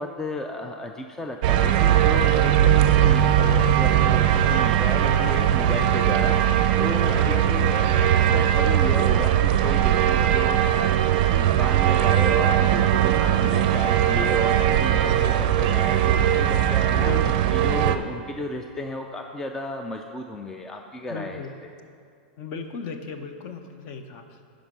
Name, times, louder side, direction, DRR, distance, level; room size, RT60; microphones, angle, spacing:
voice 1, 0.0-2.7 3.0-17.1 17.5-21.7, left 1 dB, 10° left, 4 dB, 0.4 m, -33 dB
sound 1, 1.4-18.0, right 10 dB, 50° right, 0.5 m, -20 dB
voice 2, 2.6-3.0 7.1-7.6 17.0-17.4 21.1-21.5 22.4-24.6, left 5 dB, 40° left, 7 dB, 0.8 m, -35 dB
9.8 x 5.2 x 6.0 m, 2.3 s
supercardioid pair, 150°, 6 cm